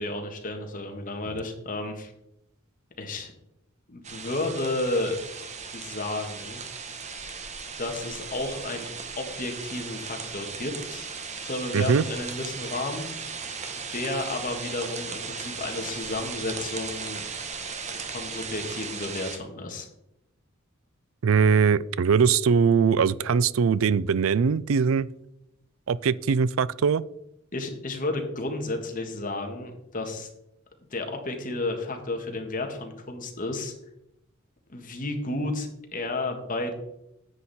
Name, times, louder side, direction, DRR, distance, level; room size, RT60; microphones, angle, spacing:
voice 1, 0.0-2.1 3.0-3.3 3.9-5.2 5.7-6.6 7.8-8.9 9.2-11.1 11.4-13.1 13.9-17.3 18.1-19.9 27.5-30.3 30.9-33.7 34.7-36.7, left 2 dB, 40° left, 4 dB, 1.7 m, -32 dB
sound 1, 4.0-19.4, right 5 dB, 35° right, 1.2 m, -37 dB
voice 2, 11.7-12.0 21.2-25.1 25.9-27.0, right 6 dB, 70° right, 19 dB, 0.4 m, -21 dB
10.0 x 8.0 x 4.2 m, 0.82 s
head